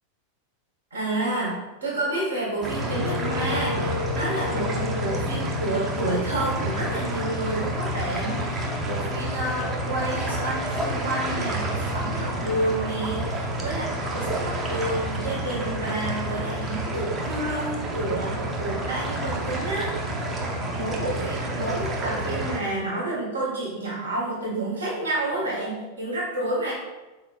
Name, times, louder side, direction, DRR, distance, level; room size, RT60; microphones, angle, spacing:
voice 1, 0.9-20.5 20.7-26.7, right 2 dB, 75° right, -5 dB, 1.4 m, -30 dB
sound 1, 2.6-22.6, right 1 dB, 20° right, 0.6 m, -29 dB
Wind instrument woodwind instrument, 2.9-8.9, left 4 dB, 70° left, 0.5 m, -36 dB
4.1 x 3.7 x 2.3 m, 1.1 s
figure-of-eight pair, 90°, 0 cm